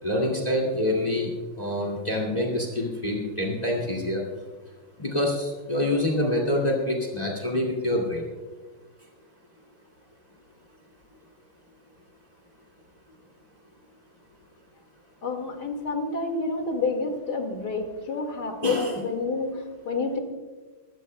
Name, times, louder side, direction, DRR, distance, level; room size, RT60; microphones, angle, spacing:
voice 1, 0.0-1.3 1.6-4.2 5.0-8.2 18.6-19.0, left 1 dB, 20° left, 0 dB, 2.2 m, -26 dB
voice 2, 15.2-20.2, left 3 dB, 55° left, 4 dB, 2.5 m, -29 dB
22.0 x 15.5 x 2.2 m, 1.4 s
omnidirectional pair, 2.1 m